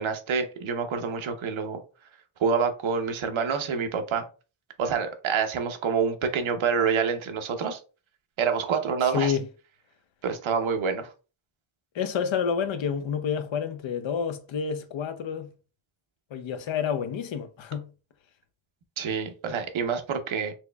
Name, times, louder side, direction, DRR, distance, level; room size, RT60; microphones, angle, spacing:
voice 1, 0.0-1.8 2.4-4.3 4.8-7.8 8.4-9.3 10.2-11.1 19.0-20.5, right 6 dB, 70° right, 0.8 m, -27 dB
voice 2, 9.0-9.5 11.9-15.5 16.3-17.9, left 7 dB, 65° left, 0.7 m, -29 dB
4.5 x 2.9 x 2.2 m
cardioid pair, 70°, 49 cm